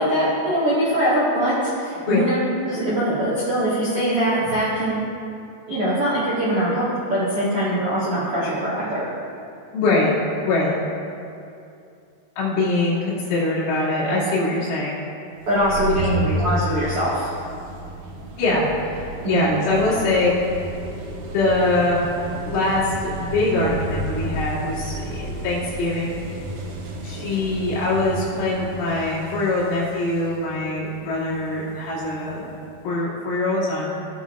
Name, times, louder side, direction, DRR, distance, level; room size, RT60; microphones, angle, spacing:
voice 1, 0.0-5.0 5.7-9.0 15.4-17.3 19.2-19.6, right 1 dB, 85° right, -9 dB, 1.2 m, -22 dB
voice 2, 9.7-10.1 10.4-10.8 12.4-15.0 16.0-16.4 18.3-18.7 19.3-20.3 21.3-22.1 22.4-26.1 27.0-32.4 32.8-33.9, left 2 dB, 75° left, -8 dB, 5.0 m, -23 dB
sound 1, 15.4-32.8, right 1 dB, 70° right, 2.8 m, -32 dB
16.0 x 9.0 x 2.4 m, 2.5 s
omnidirectional pair, 5.8 m